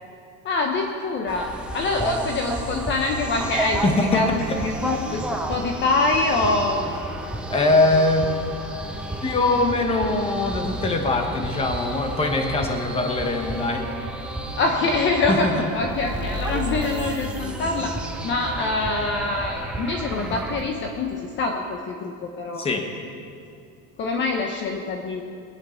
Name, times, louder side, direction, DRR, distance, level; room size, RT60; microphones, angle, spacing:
voice 1, 0.4-6.8 14.5-18.0 18.2-22.7 24.0-25.2, left 3 dB, 35° left, 3 dB, 1.0 m, -25 dB
sound 1, 1.3-20.6, right 1 dB, 5° right, 0.8 m, -31 dB
voice 2, 3.8-4.6 7.5-8.3 9.2-13.9 15.3-15.5 22.6-22.9, left 2 dB, 15° left, 4 dB, 1.3 m, -22 dB
21.0 x 9.6 x 5.8 m, 2.4 s
cardioid pair, 165°, 35 cm